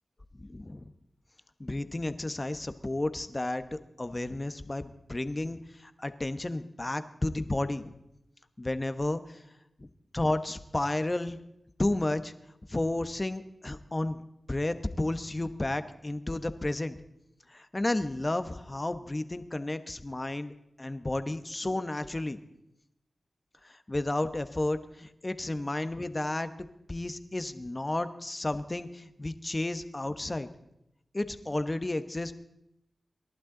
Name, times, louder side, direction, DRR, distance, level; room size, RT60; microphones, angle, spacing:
voice 1, 0.3-0.9 1.6-7.9 8.6-9.4 9.8-9.9 10.1-11.4 11.8-12.3 12.7-14.2 14.5-17.0 17.5-20.5 20.8-22.4 23.6-26.5 26.9-30.5 31.1-32.3, left 2 dB, 30° left, 10 dB, 1.0 m, -32 dB
27.5 x 11.5 x 3.9 m, 0.85 s
cardioid pair, 50°, 0 cm